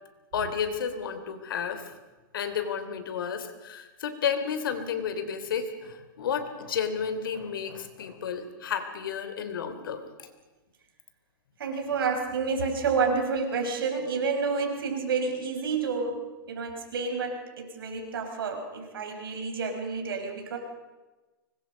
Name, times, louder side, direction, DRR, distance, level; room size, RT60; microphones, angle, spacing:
voice 1, 0.3-1.9 2.3-10.3, left 7 dB, 75° left, 9 dB, 3.2 m, -32 dB
voice 2, 11.6-20.6, right 4 dB, 80° right, 4 dB, 5.4 m, -29 dB
24.0 x 21.5 x 5.3 m, 1.2 s
hypercardioid pair, 155°, 12 cm